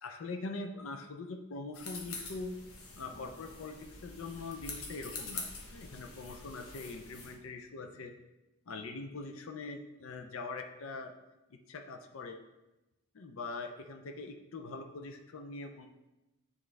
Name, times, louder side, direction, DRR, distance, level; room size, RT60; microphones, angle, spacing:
voice 1, 0.0-2.5 3.0-8.1 8.7-11.1 11.5-12.4 13.1-15.9, left 3 dB, 70° left, 5 dB, 0.5 m, -43 dB
sound 1, 1.7-7.3, left 3 dB, 90° left, 1.0 m, -45 dB
8.2 x 3.7 x 3.2 m, 1.0 s
head